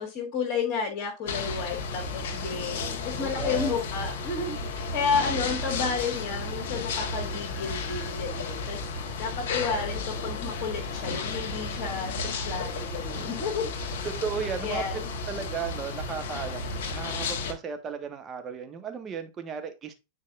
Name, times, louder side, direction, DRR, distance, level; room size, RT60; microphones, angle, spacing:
voice 1, 0.0-8.9 9.2-13.7 14.6-15.0, left 5 dB, 40° left, 1.7 m, -31 dB
sound 1, 1.3-17.5, left 3 dB, 55° left, 1.5 m, -33 dB
voice 2, 3.2-3.8 13.2-13.3 14.0-14.8 15.3-19.9, right 6 dB, 25° right, 1.2 m, -35 dB
9.4 x 4.8 x 2.4 m
figure-of-eight pair, 90°, 0 cm